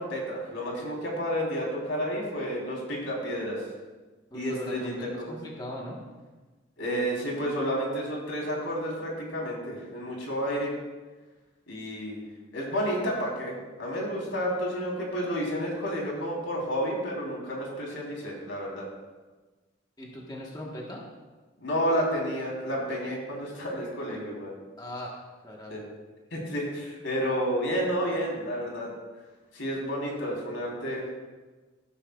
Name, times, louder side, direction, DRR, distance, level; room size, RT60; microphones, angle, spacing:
voice 1, 0.0-3.6 4.3-5.4 6.8-10.7 11.7-12.2 12.5-18.9 21.6-24.6 25.7-25.8 26.3-28.9 29.5-31.1, equal, 85° left, -2 dB, 3.6 m, -31 dB
voice 2, 4.3-6.0 20.0-21.1 24.8-25.1 25.4-25.9, left 1 dB, 20° left, -2 dB, 1.3 m, -39 dB
17.0 x 9.8 x 2.4 m, 1.3 s
head